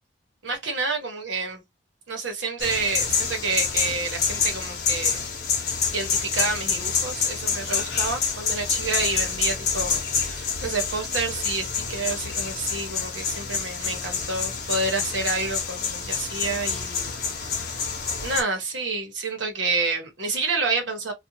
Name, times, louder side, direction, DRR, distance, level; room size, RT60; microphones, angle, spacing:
voice 1, 0.4-1.6 2.1-5.2 5.6-17.1 18.2-21.1, right 3 dB, 85° right, 1.1 m, -29 dB
sound 1, 2.6-18.4, left 5 dB, 55° left, 0.9 m, -27 dB
2.5 x 2.4 x 2.7 m
head